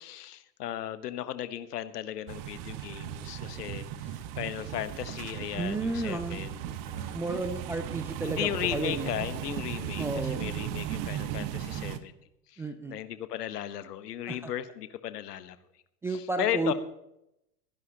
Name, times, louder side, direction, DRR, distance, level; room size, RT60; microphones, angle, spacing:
voice 1, 0.0-7.2 8.2-12.1 12.5-15.6 16.1-16.7, left 11 dB, 70° left, 13 dB, 1.3 m, -36 dB
sound 1, 2.3-12.0, right 11 dB, 40° right, 1.2 m, -36 dB
voice 2, 5.6-6.4 7.1-9.1 10.0-10.4 12.6-13.0 14.3-14.5 16.0-16.7, right 3 dB, 5° right, 6 dB, 0.3 m, -32 dB
23.5 x 11.0 x 3.0 m, 0.83 s
figure-of-eight pair, 90°, 49 cm